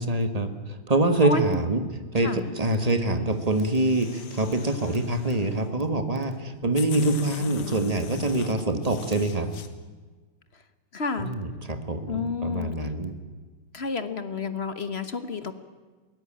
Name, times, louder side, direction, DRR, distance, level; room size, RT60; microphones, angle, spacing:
voice 1, 0.0-1.8 2.1-9.5 11.2-13.1, right 2 dB, 20° right, 8 dB, 1.4 m, -25 dB
sound 1, 3.3-5.7 6.3-6.4 6.7-9.7, left 7 dB, 85° left, 2.3 m, -41 dB
voice 2, 10.9-11.3 12.1-12.7 13.7-15.5, left 4 dB, 40° left, 11 dB, 1.0 m, -30 dB
22.5 x 17.0 x 8.8 m, 1.4 s
omnidirectional pair, 2.3 m